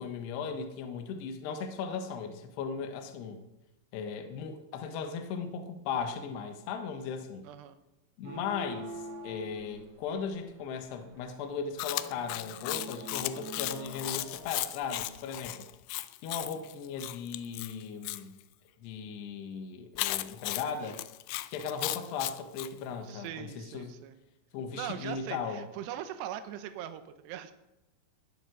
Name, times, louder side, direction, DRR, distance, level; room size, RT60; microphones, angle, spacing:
voice 1, 0.0-3.4 3.9-7.5 8.2-8.9 9.2-15.7 16.2-18.4 18.8-21.0 21.5-24.0 24.5-25.7, left 6 dB, 70° left, 6 dB, 2.9 m, -37 dB
voice 2, 7.4-7.8 23.0-24.2 24.7-27.5, right 11 dB, 75° right, 10 dB, 2.6 m, -41 dB
sound 1, 8.2-14.5, right 1 dB, 55° right, 3.8 m, -45 dB
Chewing mastication, 11.8-18.2 20.0-22.7, left 18 dB, 85° left, 2.7 m, -36 dB
20.0 x 7.7 x 6.2 m, 0.97 s
omnidirectional pair, 5.9 m